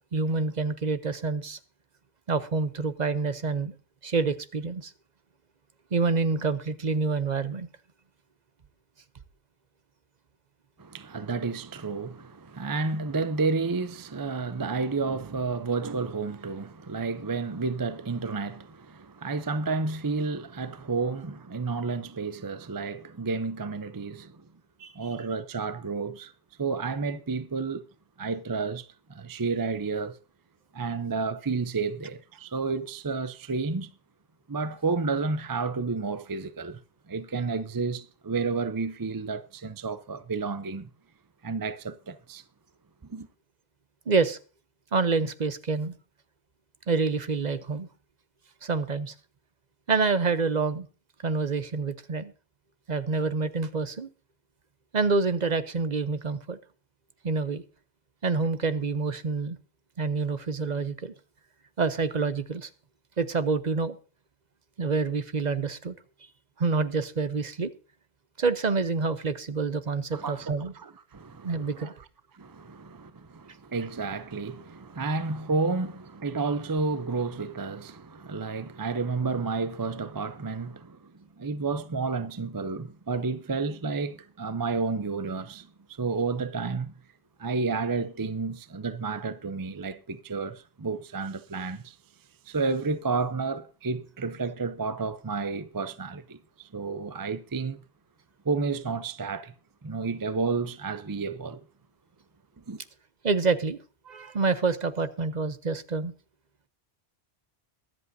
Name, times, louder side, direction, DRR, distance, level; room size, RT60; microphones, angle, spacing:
voice 1, 0.1-1.6 2.3-3.7 4.0-4.9 5.9-7.7 24.8-24.9 44.1-44.4 44.9-45.9 46.9-47.9 48.6-49.1 49.9-50.9 51.2-52.3 52.9-54.1 54.9-56.6 57.2-57.6 58.2-59.6 60.0-61.1 61.8-62.7 63.2-64.0 64.8-66.0 66.6-67.7 68.4-70.7 71.4-71.9 103.2-103.8 104.1-106.1, right 4 dB, 45° right, 0.9 m, -27 dB
voice 2, 10.8-24.5 24.9-26.3 26.6-27.9 28.2-30.2 30.7-33.9 34.5-36.8 37.1-40.9 41.4-42.4 43.1-43.3 70.1-71.9 72.3-81.1 81.4-86.9 87.4-92.0 92.5-97.8 98.4-99.5 99.8-101.6 102.6-102.8, right 4 dB, 25° right, 0.5 m, -31 dB
23.0 x 8.1 x 2.7 m
omnidirectional pair, 1.1 m